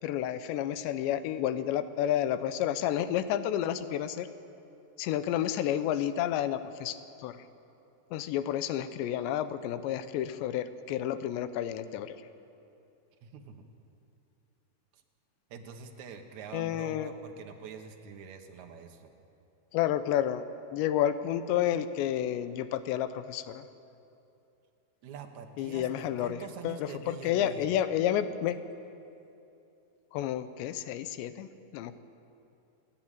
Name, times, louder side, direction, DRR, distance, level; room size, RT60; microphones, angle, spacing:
voice 1, 0.0-4.3 5.0-7.4 8.1-12.2 16.5-17.1 19.7-20.4 20.7-23.6 25.6-26.4 26.6-28.6 30.1-31.5 31.7-32.0, left 11 dB, 90° left, 12 dB, 3.1 m, -30 dB
voice 2, 13.2-13.7 14.9-15.0 15.5-19.1 25.0-27.7, right 6 dB, 60° right, 4 dB, 2.1 m, -45 dB
29.0 x 10.0 x 9.2 m, 2.7 s
omnidirectional pair, 4.9 m